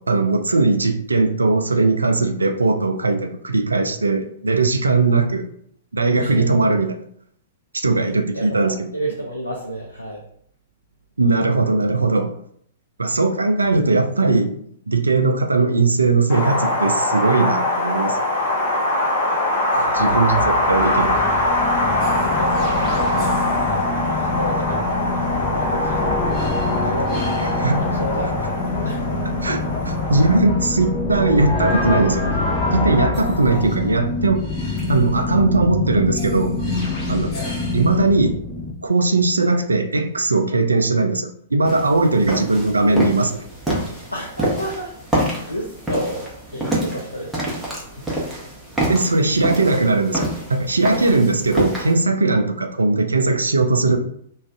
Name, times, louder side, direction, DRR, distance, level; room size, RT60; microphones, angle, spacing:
voice 1, 0.0-5.5 5.9-7.0 7.7-8.7 11.2-12.3 13.0-14.5 14.9-18.2 19.9-21.2 27.6-27.8 29.4-32.3 32.7-34.5 34.9-36.6 37.1-37.3 37.7-38.4 38.8-43.4 48.9-54.0, right 3 dB, 80° right, 6 dB, 0.4 m, -19 dB
voice 2, 6.2-6.5 7.9-8.1 8.3-10.2 13.6-13.7 19.7-21.0 22.2-29.1 33.5-33.6 37.3-37.6 44.1-48.2, equal, 90° left, -3 dB, 0.4 m, -31 dB
Wind, 16.3-30.4, left 1 dB, 55° left, 0.9 m, -22 dB
sound 1, 19.9-38.7, left 3 dB, 20° left, 0.7 m, -25 dB
sound 2, 41.6-51.9, right 1 dB, 5° right, 0.8 m, -27 dB
2.4 x 2.4 x 3.4 m, 0.66 s
figure-of-eight pair, 105°, 0 cm